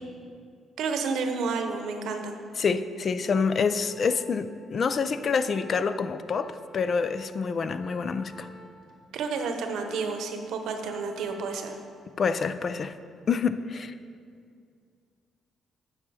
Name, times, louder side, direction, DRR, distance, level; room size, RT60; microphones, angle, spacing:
voice 1, 0.8-2.4 9.1-11.8, right 4 dB, 80° right, 6 dB, 0.8 m, -30 dB
voice 2, 2.6-8.5 12.2-13.0 13.3-13.9, left 5 dB, 50° left, 12 dB, 0.4 m, -27 dB
Organ, 2.9-12.9 13.2-13.5, left 1 dB, 80° left, 1.3 m, -51 dB
9.7 x 5.5 x 4.8 m, 2.3 s
cardioid pair, 90°, 0 cm